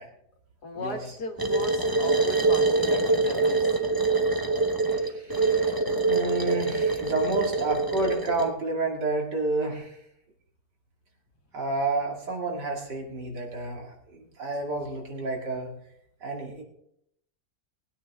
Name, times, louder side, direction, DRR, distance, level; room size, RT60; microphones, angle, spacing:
voice 1, 0.6-4.0, left 2 dB, 65° left, 3 dB, 2.2 m, -37 dB
sound 1, 1.4-8.5, right 3 dB, 20° right, 0.7 m, -24 dB
voice 2, 4.9-5.8 6.1-10.0 11.5-15.7 16.2-16.6, right 2 dB, 75° right, 0 dB, 3.0 m, -30 dB
19.5 x 9.5 x 3.6 m, 0.74 s
omnidirectional pair, 1.9 m